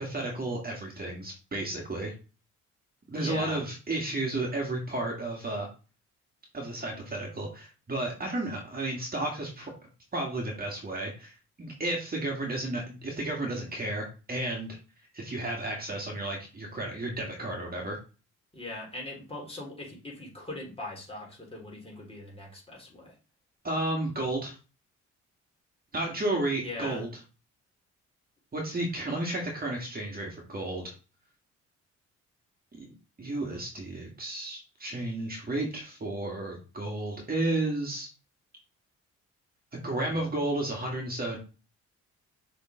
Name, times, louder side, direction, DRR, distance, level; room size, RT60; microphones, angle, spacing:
voice 1, 0.0-2.1 3.1-5.7 6.5-9.7 10.1-14.8 15.1-18.0 23.6-24.6 25.9-27.1 28.5-30.9 32.7-32.9 33.2-38.1 39.7-41.4, right 2 dB, 30° right, 0 dB, 2.1 m, -32 dB
voice 2, 3.2-3.6 18.5-23.2 26.6-27.0 40.0-40.2, left 2 dB, 20° left, -2 dB, 3.4 m, -41 dB
6.5 x 3.8 x 3.8 m, 0.33 s
cardioid pair, 90°, 30 cm